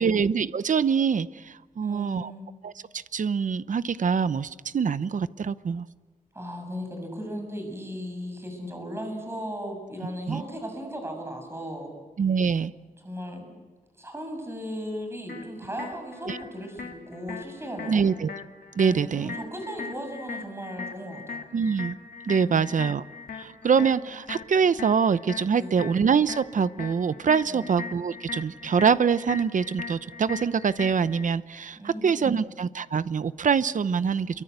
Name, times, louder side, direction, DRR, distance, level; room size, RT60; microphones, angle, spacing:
voice 1, 0.0-2.3 2.6-5.9 10.3-10.4 12.2-12.7 16.3-16.4 17.9-18.3 18.8-19.3 21.5-22.0 22.3-23.0 23.4-34.4, right 6 dB, 60° right, 15 dB, 0.8 m, -24 dB
voice 2, 1.8-2.5 6.3-11.9 13.0-13.5 14.0-18.0 18.8-21.4 22.4-22.8 25.5-25.8 27.5-27.7 31.7-32.5, equal, 15° right, 4 dB, 6.9 m, -36 dB
sound 1, 15.3-31.3, left 5 dB, 90° left, 2.7 m, -40 dB
28.0 x 24.0 x 8.1 m, 1.3 s
wide cardioid pair, 115°, 14 cm